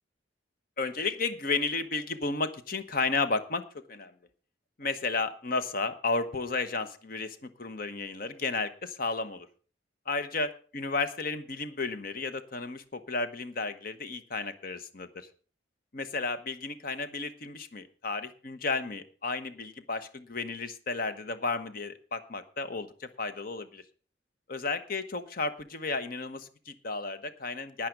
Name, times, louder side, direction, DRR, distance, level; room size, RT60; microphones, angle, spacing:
voice 1, 0.8-3.6 3.9-4.1 4.8-9.5 10.1-15.3 15.9-23.8 24.5-27.9, left 3 dB, 50° left, 11 dB, 1.0 m, -33 dB
10.5 x 10.0 x 5.1 m, 0.40 s
head